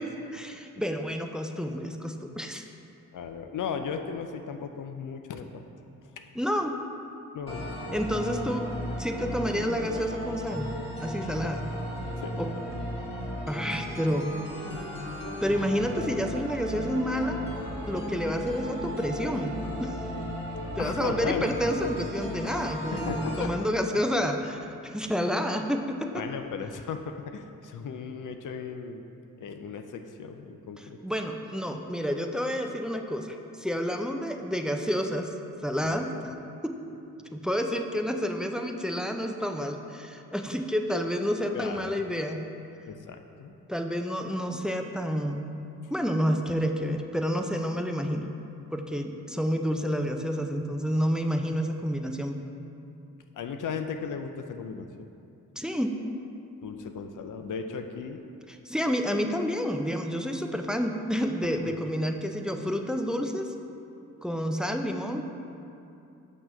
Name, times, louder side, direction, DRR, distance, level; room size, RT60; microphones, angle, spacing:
voice 1, 0.0-2.6 6.4-6.8 7.9-8.7 9.0-10.7 11.0-11.7 12.4-12.5 13.5-14.4 15.4-17.4 17.9-19.5 19.8-20.0 20.8-26.2 30.8-35.3 35.6-36.3 36.6-36.7 37.3-42.4 43.7-45.5 45.9-48.3 48.7-52.4 55.6-55.9 58.5-63.5 64.2-65.2, equal, ahead, 4 dB, 0.4 m, -29 dB
voice 2, 3.1-5.6 7.3-7.7 11.4-11.5 12.2-12.3 20.8-21.5 22.9-23.5 23.9-24.0 26.1-29.1 29.4-31.0 35.8-36.0 41.5-42.0 42.9-43.5 53.3-55.1 56.6-58.2 61.4-61.8, left 6 dB, 55° left, 6 dB, 0.5 m, -36 dB
sound 1, 7.5-23.5, equal, 15° left, 1.4 m, -35 dB
6.0 x 3.0 x 5.3 m, 2.7 s
supercardioid pair, 50°, 37 cm